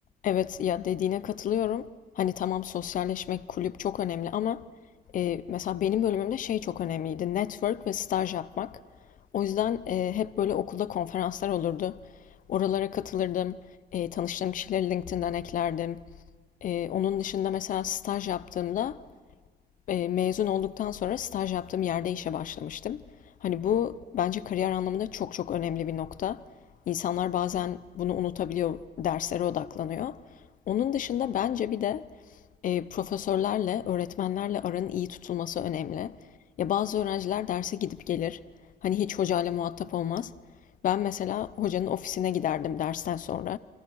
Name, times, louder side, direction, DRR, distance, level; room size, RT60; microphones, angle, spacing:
voice 1, 0.2-1.9 2.2-4.6 5.1-8.8 9.3-12.0 12.5-13.6 13.9-16.0 16.6-19.0 19.9-23.0 23.4-26.4 26.9-30.2 30.7-32.1 32.6-36.1 36.6-38.4 38.8-40.3 40.8-43.6, left 10 dB, 50° left, 0.6 m, -29 dB
28.5 x 26.0 x 6.3 m
cardioid pair, 160°, 17 cm